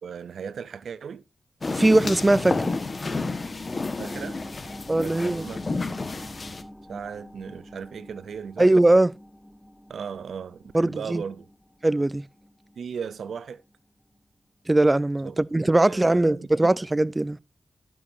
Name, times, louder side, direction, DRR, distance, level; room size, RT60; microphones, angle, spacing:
voice 1, 0.0-1.2 4.0-4.4 5.0-6.0 6.9-8.7 9.9-11.5 12.8-13.6 15.2-15.4 15.8-16.7, right 6 dB, 85° right, 0.5 m, -37 dB
sound 1, 1.6-6.6, left 3 dB, 45° left, 1.3 m, -31 dB
voice 2, 1.7-2.7 4.9-5.5 8.6-9.1 10.7-11.2 11.8-12.2 14.7-17.4, right 2 dB, 25° right, 0.4 m, -20 dB
sound 2, 2.6-13.7 14.1-14.2, equal, 10° left, 1.1 m, -47 dB
11.5 x 9.2 x 2.7 m
cardioid pair, 50°, 0 cm